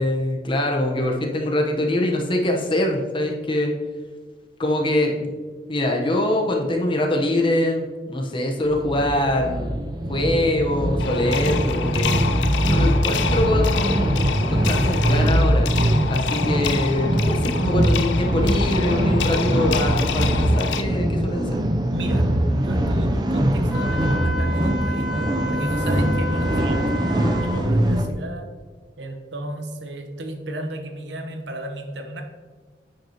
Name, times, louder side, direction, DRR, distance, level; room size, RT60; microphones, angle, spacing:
voice 1, 0.0-3.7 4.6-5.3 5.7-12.1 12.7-15.7 16.1-21.6, left 1 dB, 30° left, 1 dB, 0.9 m, -24 dB
sound 1, 8.6-28.1, right 1 dB, 25° right, 0.5 m, -22 dB
sound 2, 11.0-20.8, left 7 dB, 85° left, 0.4 m, -29 dB
voice 2, 21.9-26.8 27.2-28.5 29.0-32.2, right 1 dB, 90° right, 5 dB, 0.9 m, -34 dB
Wind instrument woodwind instrument, 23.7-27.6, left 1 dB, 5° right, 1.2 m, -31 dB
8.7 x 5.8 x 2.9 m, 1.5 s
head